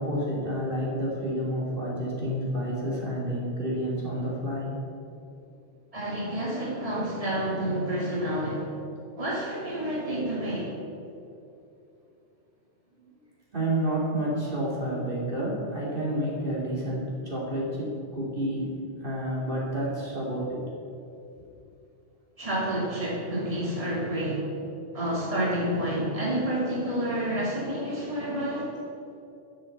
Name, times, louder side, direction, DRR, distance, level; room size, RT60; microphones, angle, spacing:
voice 1, 0.0-4.7 12.9-13.1 13.5-18.7 19.0-20.6 21.4-21.5, right 1 dB, 45° right, -6 dB, 3.2 m, -29 dB
voice 2, 5.9-8.7 9.2-10.7 22.4-24.5 24.9-28.7, right 1 dB, 30° right, -6 dB, 3.0 m, -29 dB
13.5 x 6.9 x 8.1 m, 2.7 s
omnidirectional pair, 1.2 m